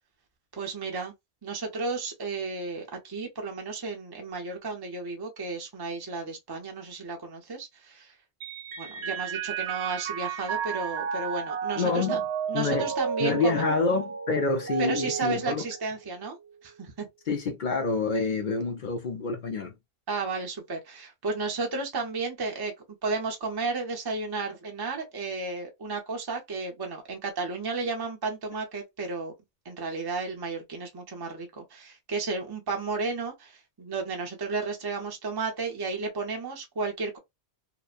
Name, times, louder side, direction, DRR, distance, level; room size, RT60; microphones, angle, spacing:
voice 1, 0.5-1.1 1.4-8.1 8.8-12.2 12.5-13.6 14.8-16.4 16.6-17.1 20.1-22.7 23.0-29.3 29.6-37.2, right 4 dB, 25° right, 0.7 m, -33 dB
Mallet percussion, 8.4-16.1, right 7 dB, 75° right, 0.9 m, -33 dB
voice 2, 11.8-12.2 12.5-12.9 13.2-15.6 17.3-19.7, left 4 dB, 55° left, 0.6 m, -27 dB
2.9 x 2.1 x 2.4 m
omnidirectional pair, 1.1 m